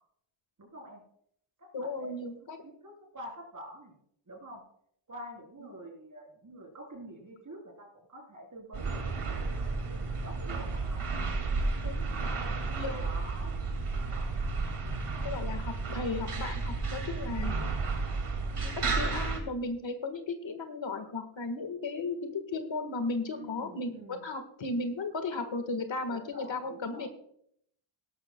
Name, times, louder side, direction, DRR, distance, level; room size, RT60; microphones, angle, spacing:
voice 1, 0.6-1.0 1.6-2.1 2.6-3.9 4.3-4.6 5.1-11.0 12.2-12.6 13.0-13.5 17.2-17.6 23.3-24.3 26.1-27.1, right 1 dB, 40° right, 1 dB, 3.7 m, -47 dB
voice 2, 1.7-2.6 11.8-12.2 12.7-13.1 15.2-17.5 18.6-27.1, left 3 dB, 65° left, 7 dB, 1.6 m, -35 dB
sound 1, 8.7-19.4, right 3 dB, 85° right, 2.3 m, -32 dB
18.5 x 12.0 x 2.2 m, 0.69 s
wide cardioid pair, 145°, 49 cm